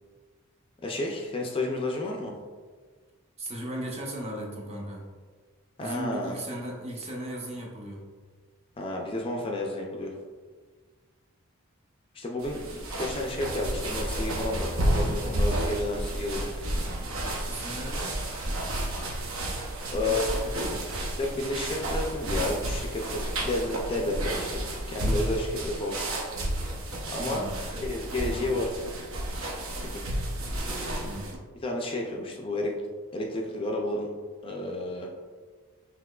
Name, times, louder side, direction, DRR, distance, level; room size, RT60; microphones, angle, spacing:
voice 1, 0.8-2.4 5.8-6.4 8.8-10.2 12.1-16.7 19.9-20.2 21.2-26.0 26.4-26.5 27.1-27.4 27.8-28.7 29.8-30.0 31.6-32.8 33.1-34.1 34.4-35.1, left 2 dB, 25° left, 0 dB, 0.3 m, -31 dB
voice 2, 3.4-5.1 5.8-8.1 17.5-18.2 19.9-20.9 27.2-27.9 28.3-28.6 31.0-31.4, right 1 dB, 30° right, -1 dB, 0.7 m, -37 dB
sound 1, 12.4-31.4, right 1 dB, 70° right, 0.6 m, -31 dB
5.8 x 2.9 x 2.3 m, 1.5 s
head